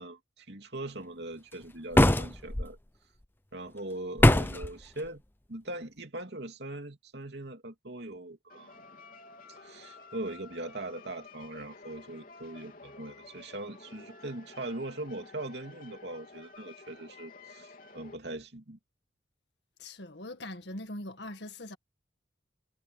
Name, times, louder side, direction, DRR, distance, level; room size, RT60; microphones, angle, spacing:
voice 1, 0.0-2.8 3.5-5.2 5.5-8.8 9.5-18.8, right 2 dB, 65° right, 2.9 m, -41 dB
sound 1, 1.9-2.7 4.2-4.7, left 1 dB, 10° left, 0.6 m, -21 dB
sound 2, 8.5-18.2, left 3 dB, 50° left, 3.8 m, -52 dB
voice 2, 19.8-21.8, left 1 dB, 70° left, 1.9 m, -41 dB
head